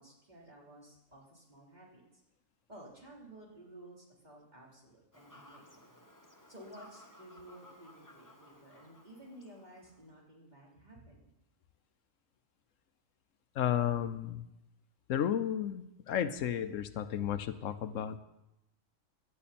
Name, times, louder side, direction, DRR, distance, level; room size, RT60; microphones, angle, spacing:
voice 1, 0.0-2.2 2.7-6.1 6.5-11.3, right 1 dB, 35° right, -4 dB, 3.8 m, -54 dB
Fowl / Bird vocalization bird call bird song, 5.1-10.1, left 1 dB, 15° left, 1.3 m, -58 dB
voice 2, 13.5-14.5 15.1-18.2, left 10 dB, 85° left, 12 dB, 1.1 m, -33 dB
17.0 x 11.5 x 4.3 m, 0.90 s
omnidirectional pair, 1.3 m